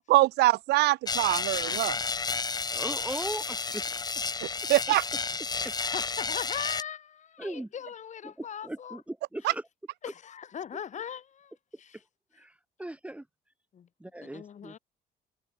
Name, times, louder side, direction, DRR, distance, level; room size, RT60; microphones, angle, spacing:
voice 1, 0.1-2.0 4.7-5.0, right 18 dB, 80° right, 0.9 m, -23 dB
sound 1, 1.1-6.8, left 4 dB, 25° left, 1.7 m, -31 dB
voice 2, 2.7-3.9 4.2-4.4 5.6-5.7 7.4-7.7 8.2-9.6 12.4-12.5 12.8-13.2 14.0-14.8, right 1 dB, 5° right, 1.4 m, -38 dB
voice 3, 5.8-9.0 10.0-11.5 11.8-12.0 13.7-13.9 14.2-14.8, left 8 dB, 45° left, 4.1 m, -40 dB
cardioid pair, 110°, 17 cm